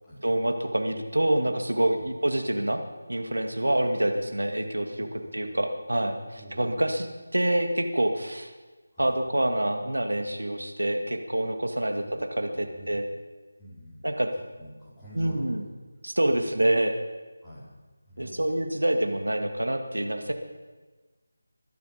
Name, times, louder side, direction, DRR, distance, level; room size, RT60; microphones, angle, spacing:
voice 1, 0.2-2.8 3.1-5.1 5.3-6.2 6.5-7.1 7.3-8.5 9.0-13.1 14.0-14.3 15.1-15.6 16.0-17.0 18.2-20.3, right 1 dB, 80° right, 5 dB, 2.1 m, -26 dB
voice 2, 5.0-5.5 6.3-6.9 8.9-9.1 12.0-13.0 13.6-14.2 14.6-15.7 16.3-16.5 17.4-17.7 18.0-18.7, equal, 5° left, -12 dB, 4.6 m, -47 dB
21.5 x 11.5 x 5.2 m, 1.3 s
figure-of-eight pair, 160°, 0 cm